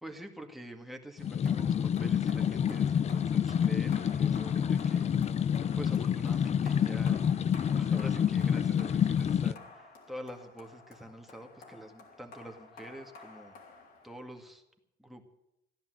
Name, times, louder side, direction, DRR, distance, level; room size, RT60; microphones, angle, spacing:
voice 1, 0.0-5.2 5.8-7.2 7.7-13.5 14.0-14.6 15.0-15.2, right 1 dB, ahead, 3 dB, 2.1 m, -46 dB
sound 1, 1.2-9.5, left 8 dB, 40° left, 0.6 m, -28 dB
sound 2, 1.5-14.5, left 3 dB, 65° left, 3.4 m, -51 dB
15.0 x 11.0 x 7.8 m, 0.85 s
cardioid pair, 110°, 17 cm